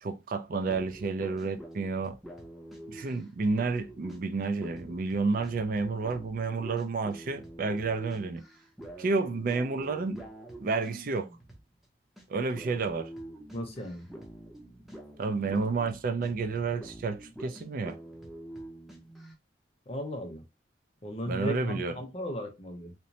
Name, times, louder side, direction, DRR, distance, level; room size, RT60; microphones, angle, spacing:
voice 1, 0.0-2.2 2.9-8.4 9.0-10.3 10.6-11.3 12.3-13.1 15.2-18.0 21.3-22.0, right 4 dB, 50° right, 0.4 m, -30 dB
sound 1, 0.6-11.8 12.2-12.3 12.5-19.3, right 1 dB, ahead, 0.6 m, -46 dB
voice 2, 13.5-14.1 19.9-20.4 21.0-22.9, left 1 dB, 35° left, 0.7 m, -36 dB
3.0 x 2.0 x 2.6 m
head